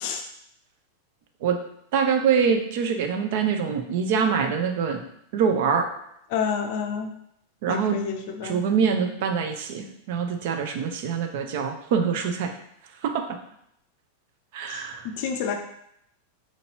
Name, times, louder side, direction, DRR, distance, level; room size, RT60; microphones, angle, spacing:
voice 1, 1.9-5.0 5.3-5.9 7.6-8.0 8.4-12.5 13.0-13.2 14.5-15.1, right 6 dB, 50° right, 5 dB, 0.6 m, -24 dB
voice 2, 6.3-7.1 7.7-8.6 14.7-15.5, left 6 dB, 50° left, 4 dB, 0.5 m, -29 dB
4.5 x 3.9 x 2.9 m, 0.74 s
figure-of-eight pair, 90°, 0 cm